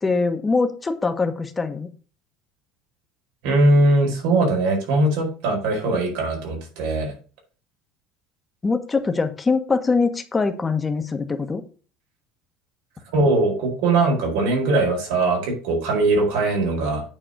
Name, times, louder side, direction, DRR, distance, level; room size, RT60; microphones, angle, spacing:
voice 1, 0.0-1.9 8.6-11.6, left 4 dB, 15° left, 7 dB, 1.3 m, -23 dB
voice 2, 3.4-7.1 13.1-17.0, right 2 dB, 85° right, 0 dB, 4.7 m, -20 dB
9.0 x 4.2 x 6.6 m, 0.38 s
cardioid pair, 145°, 0 cm